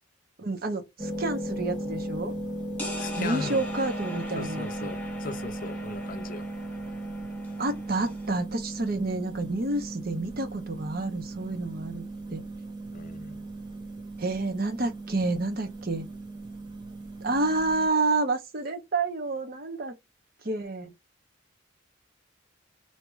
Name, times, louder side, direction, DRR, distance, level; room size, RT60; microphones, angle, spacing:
voice 1, 0.4-2.3 3.2-4.9 7.6-12.0 12.3-12.4 14.2-16.1 17.2-20.0 20.4-20.9, right 2 dB, 50° right, 0.8 m, -29 dB
sound 1, 1.0-17.9, right 2 dB, 20° right, 0.8 m, -37 dB
sound 2, 2.8-8.4, left 2 dB, 10° left, 1.1 m, -41 dB
voice 2, 3.0-3.6 4.4-6.5 12.9-13.5, left 4 dB, 45° left, 0.5 m, -38 dB
4.7 x 2.8 x 2.3 m
head